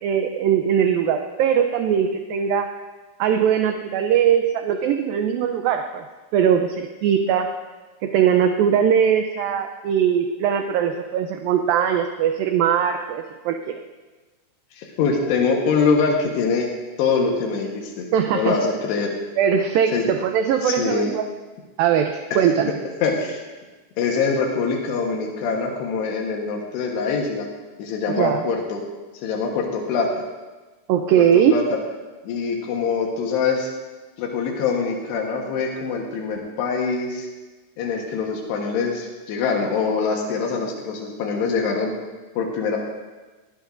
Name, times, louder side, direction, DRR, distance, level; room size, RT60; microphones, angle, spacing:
voice 1, 0.0-2.7 3.2-6.0 6.3-7.5 8.0-13.6 18.1-18.6 19.4-21.3 21.8-22.7 28.2-28.4 30.9-31.5, right 8 dB, 80° right, 5 dB, 2.2 m, -20 dB
voice 2, 14.7-16.7 17.0-18.1 18.3-19.1 19.9-20.1 20.6-21.2 22.3-22.4 23.0-23.4 24.0-27.5 27.8-28.8 29.2-30.1 31.2-31.6 32.2-33.7 34.2-37.3 37.8-41.9 42.4-42.8, left 5 dB, 85° left, 0 dB, 3.5 m, -24 dB
19.0 x 16.0 x 2.6 m, 1.3 s
omnidirectional pair, 4.7 m